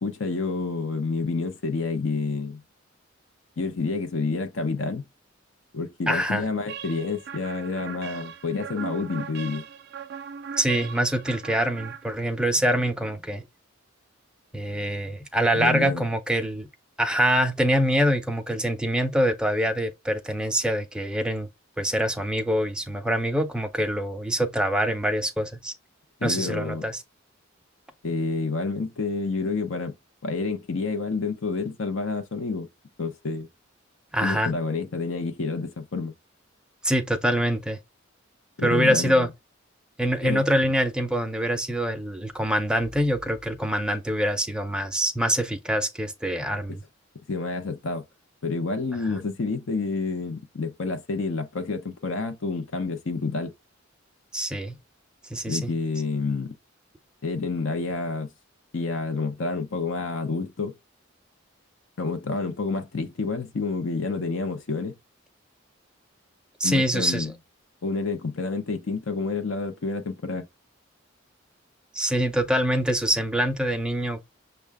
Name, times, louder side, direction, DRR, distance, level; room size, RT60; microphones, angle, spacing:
voice 1, 0.0-2.6 3.6-5.0 5.7-9.6 15.5-16.0 26.2-26.9 28.0-29.9 30.2-32.7 33.0-33.5 34.2-36.1 38.6-39.3 40.2-40.4 47.3-48.0 48.4-53.5 55.4-56.5 57.2-58.3 58.7-60.7 62.0-64.9 66.6-67.3 67.8-70.5, left 4 dB, 70° left, 0.6 m, -29 dB
voice 2, 6.1-6.4 10.6-13.4 14.5-16.7 17.0-21.5 21.8-25.7 26.2-27.0 34.1-34.5 36.8-37.8 38.6-39.3 40.0-46.8 54.3-54.8 55.3-55.7 66.6-67.3 71.9-74.2, equal, 5° right, 0.5 m, -25 dB
sound 1, 6.7-12.6, right 7 dB, 55° right, 0.4 m, -39 dB
6.4 x 2.3 x 3.4 m
head